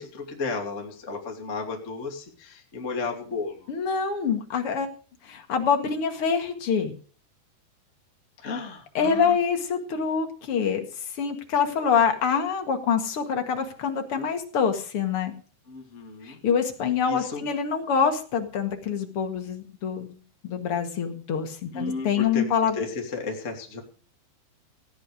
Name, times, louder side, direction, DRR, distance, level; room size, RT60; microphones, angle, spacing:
voice 1, 0.0-3.7 8.4-9.4 15.7-16.4 17.0-17.4 21.7-23.8, left 4 dB, 25° left, 1 dB, 1.8 m, -33 dB
voice 2, 3.7-4.9 5.2-6.9 8.9-10.8 11.2-15.3 16.2-20.2 20.4-22.7, left 6 dB, 60° left, 5 dB, 1.5 m, -25 dB
17.0 x 10.0 x 5.0 m, 0.40 s
omnidirectional pair, 5.4 m